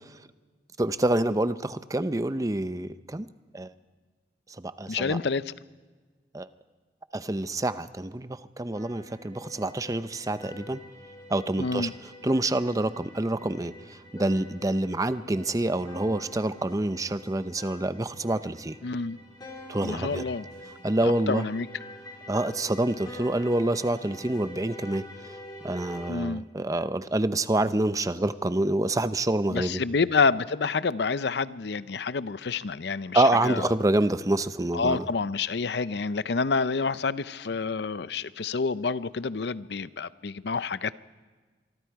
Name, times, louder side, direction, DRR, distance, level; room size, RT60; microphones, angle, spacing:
voice 1, 0.8-3.3 3.5-3.7 4.6-5.2 6.3-6.5 7.1-10.8 11.3-11.9 12.2-18.7 19.7-20.2 20.8-21.4 22.3-25.3 25.6-29.8 33.1-35.0, right 1 dB, 20° right, 0.6 m, -27 dB
voice 2, 4.9-5.5 11.6-11.9 18.8-19.2 19.8-20.5 21.0-21.7 26.1-26.4 29.5-33.7 34.7-41.0, left 4 dB, 65° left, 0.6 m, -28 dB
sound 1, 8.8-26.1, left 1 dB, 25° left, 3.8 m, -46 dB
24.5 x 24.0 x 4.7 m
head